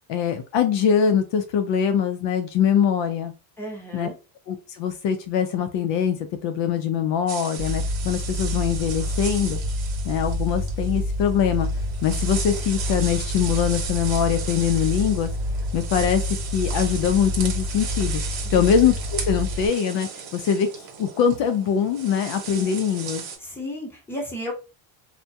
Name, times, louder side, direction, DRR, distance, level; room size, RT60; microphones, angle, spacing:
voice 1, 0.1-3.3 3.9-4.1 4.5-9.6 10.0-11.7 12.0-15.3 15.7-23.2, left 8 dB, 60° left, 7 dB, 0.5 m, -23 dB
voice 2, 3.6-4.1 18.4-18.5 23.4-24.5, left 1 dB, 5° left, -2 dB, 0.8 m, -33 dB
sound 1, 7.3-23.4, right 6 dB, 60° right, 1.0 m, -36 dB
sound 2, 7.6-19.7, left 1 dB, 45° right, 0.6 m, -28 dB
2.2 x 2.1 x 2.7 m, 0.31 s
cardioid pair, 115°, 49 cm